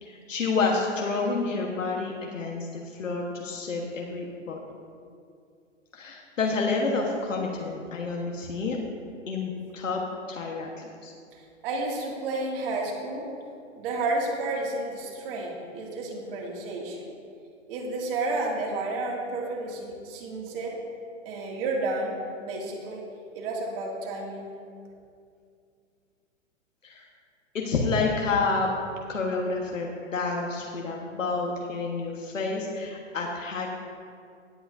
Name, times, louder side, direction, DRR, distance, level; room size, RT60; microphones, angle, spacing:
voice 1, 0.0-4.6 5.9-8.8 9.3-10.0 10.3-11.1 26.8-27.0 27.5-28.7 29.1-33.7, left 4 dB, 80° left, 0 dB, 1.4 m, -29 dB
voice 2, 11.6-13.3 13.8-17.0 17.7-20.8 21.2-23.0 23.3-24.5, right 2 dB, 50° right, -1 dB, 2.4 m, -31 dB
18.0 x 8.1 x 2.7 m, 2.3 s
hypercardioid pair, 120°, 38 cm